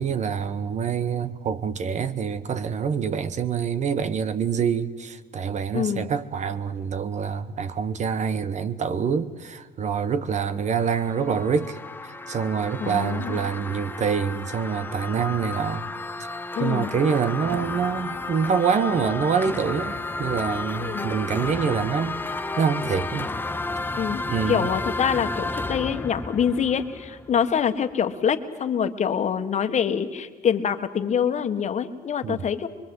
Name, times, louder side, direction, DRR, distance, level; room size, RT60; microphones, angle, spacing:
voice 1, 0.0-11.8 12.3-15.9 16.6-22.2 22.6-23.3 24.3-24.7 32.2-32.4, right 6 dB, 45° right, 1.2 m, -26 dB
voice 2, 5.7-6.1 12.8-13.4 16.5-16.9 20.8-21.1 24.0-32.7, left 7 dB, 45° left, 1.6 m, -25 dB
sound 1, 10.5-27.5, left 3 dB, 10° left, 0.9 m, -32 dB
25.5 x 22.5 x 8.0 m
cardioid pair, 110°, 17 cm